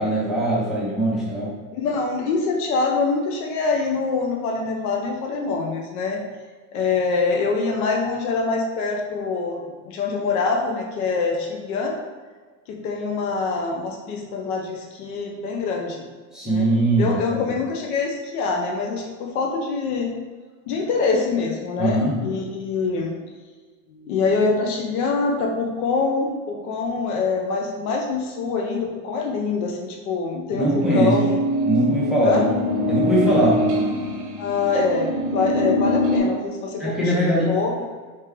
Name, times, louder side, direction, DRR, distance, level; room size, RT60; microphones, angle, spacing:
voice 1, 0.0-1.5 16.3-17.4 21.8-22.1 30.5-31.2 31.6-32.5 32.9-33.6 36.8-37.5, right 1 dB, ahead, -7 dB, 0.5 m, -21 dB
voice 2, 1.7-6.2 6.7-12.0 12.7-16.1 16.4-16.7 17.0-20.1 20.7-23.2 23.9-31.4 32.2-32.4 34.4-37.8, left 4 dB, 85° left, 1 dB, 0.8 m, -25 dB
sound 1, 30.6-36.2, left 1 dB, 60° right, 1.0 m, -23 dB
4.4 x 3.4 x 3.4 m, 1.4 s
supercardioid pair, 160°, 42 cm